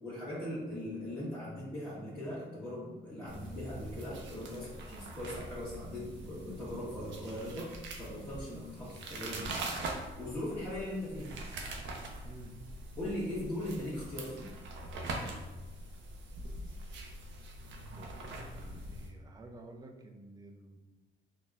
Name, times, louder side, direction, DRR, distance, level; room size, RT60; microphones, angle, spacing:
voice 1, 0.0-9.6 10.1-11.4 13.0-14.5, left 1 dB, 10° left, -12 dB, 1.2 m, -40 dB
sound 1, 3.2-19.1, right 2 dB, 70° right, 0.5 m, -43 dB
voice 2, 12.2-12.6 17.9-20.8, right 2 dB, 20° right, 3 dB, 0.4 m, -52 dB
3.9 x 2.1 x 2.4 m, 1.2 s
cardioid pair, 90°, 20 cm